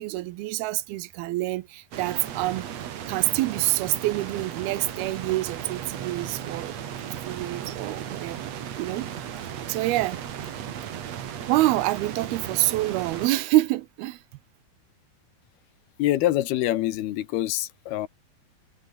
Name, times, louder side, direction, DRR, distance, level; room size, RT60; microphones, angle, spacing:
voice 1, 0.0-2.7 3.1-6.7 7.2-8.5 8.8-9.1 9.7-10.2 11.5-14.2, right 17 dB, 80° right, 2.7 m, -26 dB
sound 1, 1.9-13.3, right 9 dB, 50° right, 2.5 m, -36 dB
voice 2, 16.0-18.1, left 14 dB, 85° left, 3.2 m, -25 dB
omnidirectional pair, 4.4 m